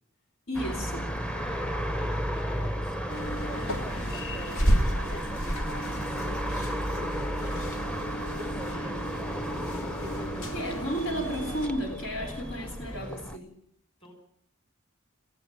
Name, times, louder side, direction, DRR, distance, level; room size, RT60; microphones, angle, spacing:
voice 1, 0.5-1.1 10.5-13.5, equal, 70° left, 3 dB, 3.7 m, -33 dB
sound 1, 0.5-13.4, equal, 5° left, 0.8 m, -34 dB
voice 2, 1.3-9.3 14.0-14.2, equal, 25° left, 5 dB, 5.9 m, -48 dB
sound 2, 3.1-11.7, equal, 90° left, 2.4 m, -32 dB
18.0 x 15.5 x 9.9 m, 0.69 s
head